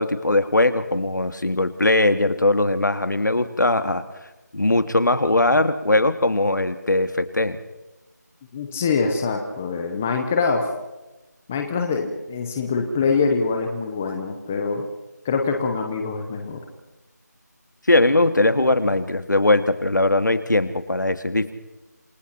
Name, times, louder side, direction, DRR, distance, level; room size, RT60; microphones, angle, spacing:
voice 1, 0.0-4.0 4.5-7.6 17.9-21.5, left 2 dB, 85° left, 10 dB, 2.4 m, -20 dB
voice 2, 8.5-10.7 11.5-14.8 15.2-16.6, left 4 dB, 5° left, 4 dB, 0.7 m, -24 dB
28.0 x 19.5 x 5.8 m, 1.0 s
figure-of-eight pair, 175°, 10 cm